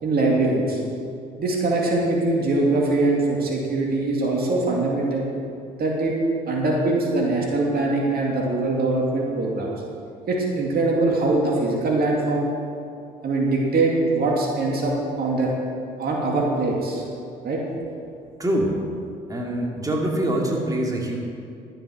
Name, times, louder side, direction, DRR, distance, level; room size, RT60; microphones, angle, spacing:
voice 1, 0.0-0.8 1.4-5.3 5.8-6.1 6.5-9.7 10.3-12.5 13.2-15.5 16.0-17.0 17.4-17.6, right 2 dB, 55° right, -2 dB, 2.3 m, -22 dB
voice 2, 18.4-18.8 19.3-21.2, right 1 dB, 20° right, -1 dB, 2.4 m, -24 dB
13.0 x 7.8 x 6.3 m, 2.5 s
supercardioid pair, 70°, 19 cm